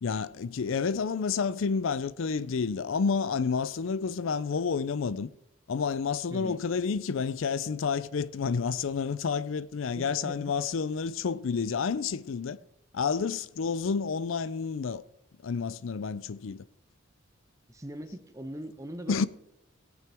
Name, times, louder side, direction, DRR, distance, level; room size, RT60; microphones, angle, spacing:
voice 1, 0.0-5.3 5.7-12.6 12.9-15.0 15.4-16.6 19.1-19.3, left 5 dB, 80° left, 0.5 m, -30 dB
voice 2, 6.3-6.6 9.9-10.5 17.7-19.3, right 1 dB, 15° right, 1.0 m, -40 dB
17.5 x 8.9 x 3.5 m
head